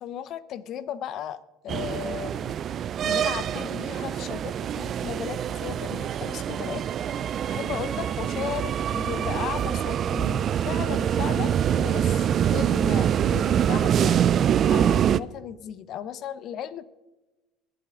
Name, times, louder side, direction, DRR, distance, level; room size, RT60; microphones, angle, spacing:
voice 1, 0.0-1.4 1.6-2.6 3.0-6.8 7.5-14.3 14.7-16.9, left 10 dB, 55° left, 16 dB, 0.7 m, -36 dB
sound 1, 1.7-15.2, right 9 dB, 45° right, 0.3 m, -25 dB
23.0 x 7.8 x 3.7 m, 1.1 s
supercardioid pair, 90°, 0 cm